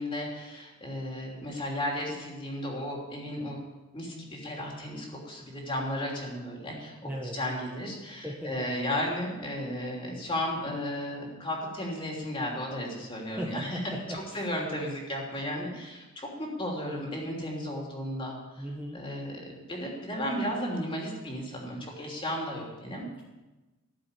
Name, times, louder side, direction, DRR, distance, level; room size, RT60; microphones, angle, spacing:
voice 1, 0.0-3.6 3.9-7.0 7.3-13.8 14.1-18.6 18.9-23.0, left 1 dB, 25° left, -1 dB, 3.1 m, -34 dB
voice 2, 7.0-7.4 8.2-8.7 13.2-14.5 18.6-19.0, equal, 5° right, -3 dB, 1.3 m, -38 dB
14.5 x 7.3 x 8.2 m, 1.1 s
head